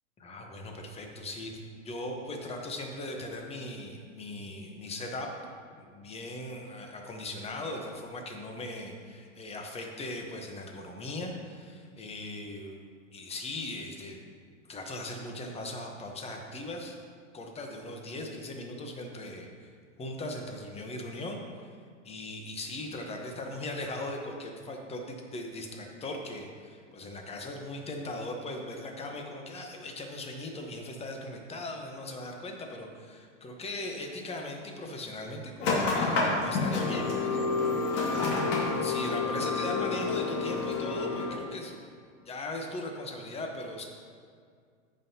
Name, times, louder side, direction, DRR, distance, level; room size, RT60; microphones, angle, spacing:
voice 1, 0.2-5.3 5.7-12.8 13.1-14.2 14.7-17.0 17.3-19.5 20.0-21.4 22.0-37.4 38.0-38.3 38.8-41.7 42.2-43.8, left 2 dB, 15° left, 2 dB, 1.0 m, -39 dB
sound 1, 35.6-41.3, left 3 dB, 50° left, 2.1 m, -29 dB
13.5 x 5.6 x 2.8 m, 2.1 s
hypercardioid pair, 130°, 38 cm